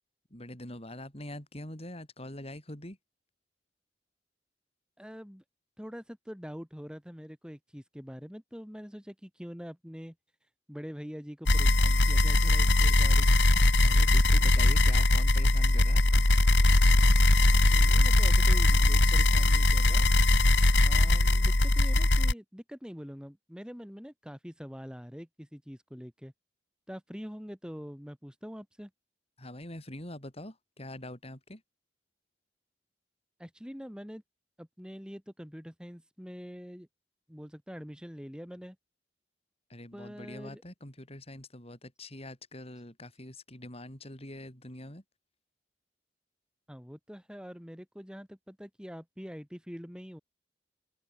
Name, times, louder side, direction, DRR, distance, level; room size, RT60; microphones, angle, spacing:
voice 1, 0.3-3.0 13.8-16.3 29.4-31.6 39.7-45.0, left 1 dB, 35° left, 7.5 m, -44 dB
voice 2, 5.0-5.4 5.8-10.1 10.7-13.3 17.7-20.1 20.8-26.3 26.9-28.9 33.4-34.2 34.6-36.9 37.3-38.8 39.9-40.6 46.7-50.2, equal, 5° right, 6.0 m, -44 dB
sound 1, 11.5-22.3, left 2 dB, 90° left, 2.2 m, -21 dB
open air
head